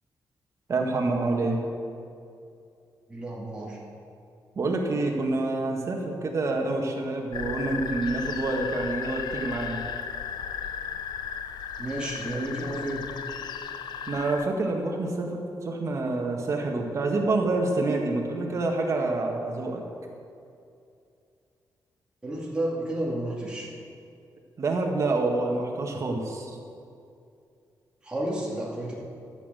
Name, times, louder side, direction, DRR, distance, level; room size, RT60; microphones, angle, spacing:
voice 1, 0.7-1.6 4.5-9.8 14.1-19.8 24.6-26.5, right 2 dB, 45° right, 1 dB, 1.7 m, -27 dB
voice 2, 3.1-3.8 11.8-13.1 22.2-23.7 28.0-29.0, right 1 dB, 15° right, -5 dB, 2.3 m, -31 dB
sound 1, 7.3-14.5, left 7 dB, 85° left, 0.6 m, -35 dB
13.0 x 8.3 x 6.9 m, 2.5 s
wide cardioid pair, 160°, 7 cm